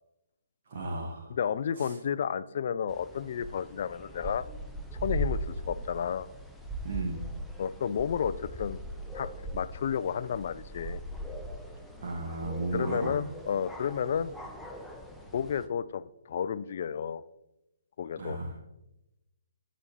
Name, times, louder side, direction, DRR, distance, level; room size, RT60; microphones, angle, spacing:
voice 1, 0.7-1.4 1.8-1.9 6.8-7.3 12.0-13.2 18.2-18.5, right 2 dB, 45° right, 1 dB, 1.3 m, -34 dB
voice 2, 1.3-4.4 5.0-6.3 7.6-8.8 9.1-11.0 12.4-14.3 15.3-17.2 18.0-18.4, left 7 dB, 45° left, 16 dB, 0.3 m, -32 dB
sound 1, 2.9-15.7, equal, ahead, 0.6 m, -40 dB
12.5 x 5.1 x 2.9 m, 0.93 s
figure-of-eight pair, 135°, 0 cm